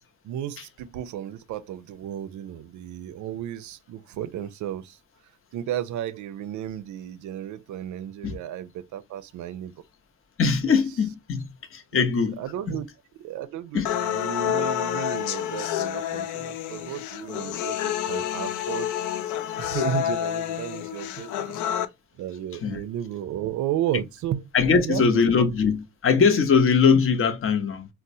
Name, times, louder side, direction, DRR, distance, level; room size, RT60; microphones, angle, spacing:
voice 1, 0.2-5.0 5.5-9.7 10.7-10.8 11.9-12.1 12.4-12.9 13.2-18.9 19.6-21.6 22.2-24.5 24.8-25.5, right 11 dB, 70° right, 0.5 m, -33 dB
voice 2, 10.4-12.4 12.7-12.8 13.7-13.9 22.6-22.8 24.5-27.9, left 5 dB, 45° left, 0.7 m, -21 dB
sound 1, 13.9-21.9, left 11 dB, 80° left, 0.4 m, -29 dB
4.1 x 2.1 x 2.6 m
cardioid pair, 90°, 30 cm